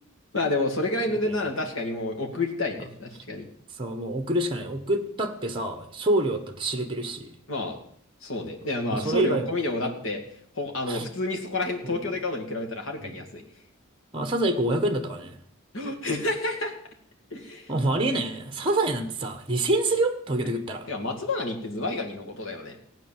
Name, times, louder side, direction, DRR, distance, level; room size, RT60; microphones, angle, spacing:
voice 1, 0.3-3.4 7.5-7.8 8.2-10.2 10.5-13.4 15.7-16.8 17.3-17.7 20.5-20.6 20.9-22.8, left 2 dB, 70° left, 3 dB, 2.4 m, -29 dB
voice 2, 3.8-7.3 8.9-9.4 10.9-11.1 11.8-12.0 13.0-13.1 14.1-15.4 17.7-20.9, right 1 dB, 25° right, 7 dB, 1.3 m, -26 dB
16.0 x 9.1 x 7.5 m, 0.65 s
head